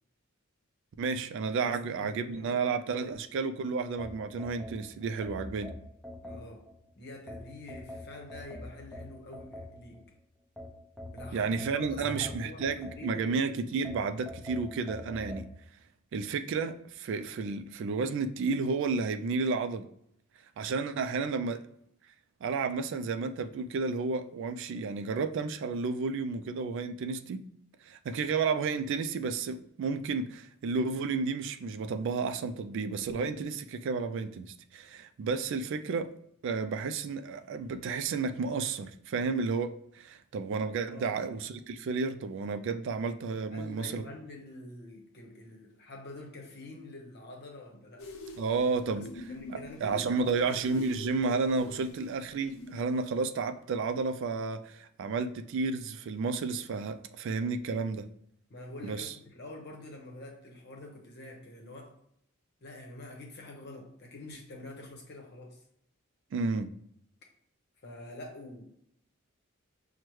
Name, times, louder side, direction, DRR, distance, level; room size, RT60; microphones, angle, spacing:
voice 1, 1.0-5.7 11.3-15.5 16.1-19.9 20.6-21.6 22.4-27.4 27.8-36.1 36.4-44.0 48.4-49.1 49.5-58.1 58.8-59.1 66.3-66.7, right 4 dB, 60° right, 0.3 m, -32 dB
voice 2, 1.6-3.1 6.2-6.7 7.0-10.1 11.1-13.4 40.9-41.2 43.5-48.1 48.6-50.8 58.5-62.0 62.6-65.6 67.8-68.6, left 2 dB, 50° left, 0.9 m, -46 dB
sound 1, 4.0-6.8 7.3-10.0 10.6-13.3 13.8-15.5, left 1 dB, ahead, 0.6 m, -44 dB
sound 2, 48.0-53.2, left 2 dB, 80° left, 0.6 m, -46 dB
6.0 x 2.1 x 3.1 m
head